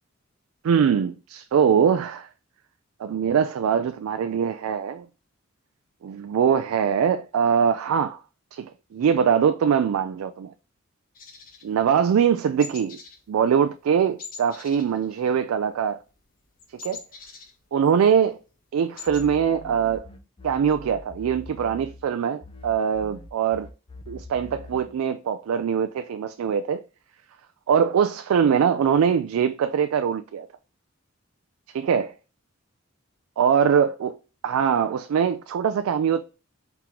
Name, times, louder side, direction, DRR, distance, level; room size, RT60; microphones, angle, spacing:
voice 1, 0.6-2.3 3.0-5.1 6.0-8.2 8.5-10.5 11.6-13.0 13.3-16.0 16.8-17.0 17.7-18.4 18.7-20.1 20.4-23.7 24.1-26.8 27.7-30.5 31.7-32.1 33.4-34.2 34.4-36.2, right 7 dB, 90° right, 0.3 m, -22 dB
sound 1, 11.2-12.3 12.6-13.2 13.5-13.7 14.2-15.7 16.0-18.1 18.5-18.6 18.7-19.3, left 5 dB, 40° left, 0.9 m, -43 dB
sound 2, 19.1-22.1 22.4-25.0, left 2 dB, 25° left, 0.4 m, -43 dB
4.6 x 2.9 x 3.7 m
head